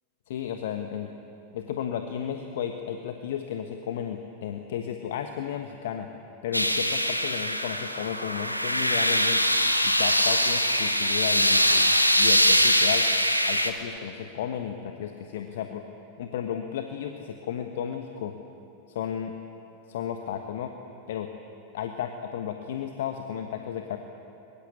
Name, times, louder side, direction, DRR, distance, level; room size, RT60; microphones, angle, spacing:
voice 1, 0.3-1.1 1.5-6.1 6.4-9.4 9.8-11.9 12.2-13.1 13.5-15.9 16.2-18.3 18.9-19.3 19.9-20.7 21.1-21.3 21.7-24.0, left 9 dB, 55° left, 6 dB, 1.3 m, -33 dB
sound 1, 6.5-13.7, equal, 90° left, 1.4 m, -23 dB
23.0 x 22.0 x 8.5 m, 2.7 s
figure-of-eight pair, 90°, 0 cm